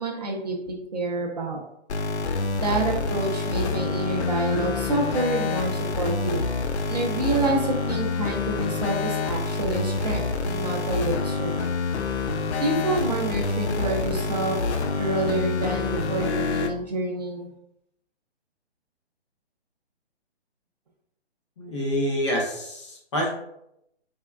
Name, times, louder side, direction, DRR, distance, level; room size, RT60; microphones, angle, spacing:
voice 1, 0.0-1.6 2.6-6.4 6.9-11.6 12.6-14.6 14.9-17.5, right 2 dB, 40° right, 0 dB, 0.4 m, -28 dB
sound 1, 1.9-16.7, left 4 dB, 85° left, 0.5 m, -27 dB
voice 2, 21.6-23.3, equal, 30° left, -2 dB, 0.5 m, -27 dB
3.4 x 2.1 x 2.2 m, 0.78 s
hypercardioid pair, 150°, 33 cm